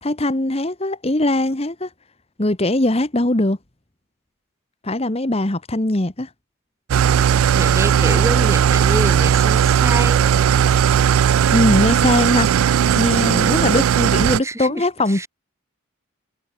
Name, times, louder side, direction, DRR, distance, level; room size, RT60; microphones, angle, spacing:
voice 1, 0.0-1.9 2.4-3.6 4.8-6.3 11.5-12.5 12.9-15.3, left 1 dB, 30° left, 1.3 m, -20 dB
Engine starting / Idling, 6.9-14.4, right 8 dB, 85° right, 0.3 m, -16 dB
voice 2, 7.5-10.3 13.2-13.7 14.4-15.3, right 1 dB, 15° right, 2.7 m, -27 dB
head